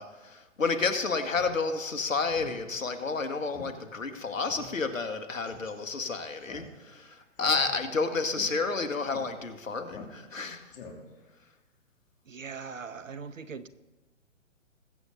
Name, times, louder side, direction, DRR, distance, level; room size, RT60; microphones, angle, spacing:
voice 1, 0.0-10.7, left 4 dB, 80° left, 8 dB, 1.6 m, -31 dB
Speech synthesizer, 1.3-1.5 1.9-2.0 2.3-2.6 2.9-3.0 3.5-3.7 4.0-4.1 4.4-4.7 5.5-5.7 6.4-7.0 7.4-8.0 8.3-8.5 9.1-9.3 9.9-10.4 10.7-11.2, left 5 dB, 45° left, 3.1 m, -46 dB
voice 2, 12.3-13.7, right 5 dB, 80° right, 14 dB, 1.0 m, -40 dB
21.0 x 8.1 x 3.9 m, 1.1 s
figure-of-eight pair, 125°, 39 cm